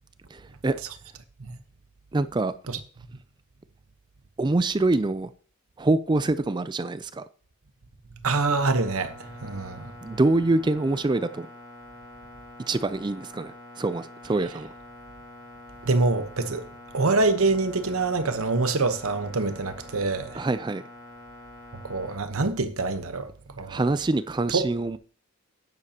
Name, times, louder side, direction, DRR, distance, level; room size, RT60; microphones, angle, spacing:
voice 1, 0.3-0.8 2.1-2.5 4.4-5.3 5.8-7.2 10.0-11.5 12.7-14.7 20.3-20.8 23.7-25.0, right 2 dB, 20° right, 0.4 m, -25 dB
voice 2, 8.2-9.9 15.8-16.7 16.9-20.4 21.8-23.3 23.6-23.8 24.5-24.7, right 3 dB, 80° right, 1.1 m, -25 dB
sound 1, 8.5-22.2, left 1 dB, 20° left, 2.5 m, -46 dB
12.5 x 9.7 x 2.9 m
head